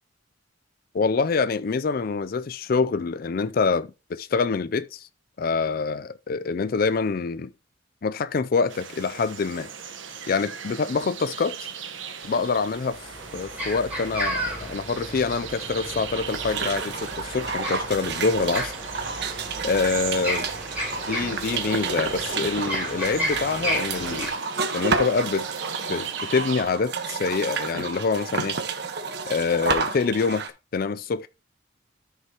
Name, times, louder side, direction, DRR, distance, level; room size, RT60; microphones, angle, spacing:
voice 1, 0.9-5.1 5.4-7.5 8.0-9.7 10.3-11.7 12.2-13.0 13.3-18.7 19.6-20.5 21.1-24.3 24.7-25.5 25.9-28.6 29.3-30.5 30.7-31.3, left 4 dB, 50° left, 0.4 m, -25 dB
sound 1, 8.7-26.6, right 7 dB, 80° right, 1.2 m, -38 dB
sound 2, 12.2-12.3 12.7-24.3, equal, 10° right, 4.1 m, -33 dB
sound 3, 16.2-30.5, right 4 dB, 60° right, 1.2 m, -30 dB
13.0 x 5.6 x 2.9 m
head